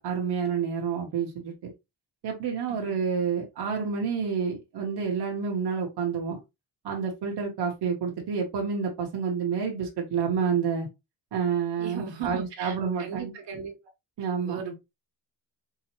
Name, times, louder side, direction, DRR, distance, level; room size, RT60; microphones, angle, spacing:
voice 1, 0.0-1.7 2.2-6.4 6.8-10.9 11.3-13.3 14.2-14.6, right 6 dB, 65° right, 1.1 m, -29 dB
voice 2, 11.8-13.7 14.4-14.7, right 7 dB, 85° right, 1.3 m, -37 dB
4.0 x 2.9 x 2.9 m
wide cardioid pair, 165°, 42 cm